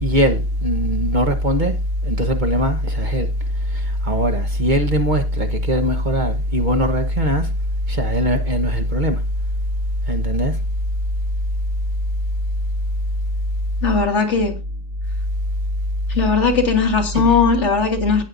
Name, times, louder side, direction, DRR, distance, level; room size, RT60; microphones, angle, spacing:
voice 1, 0.0-1.7 2.0-3.3 3.7-7.5 7.9-9.2 10.1-10.6 17.1-17.4, equal, 40° right, 1.3 m, -20 dB
voice 2, 13.8-14.6 16.1-18.2, left 5 dB, 65° left, 2.0 m, -18 dB
18.0 x 6.5 x 2.6 m
omnidirectional pair, 1.3 m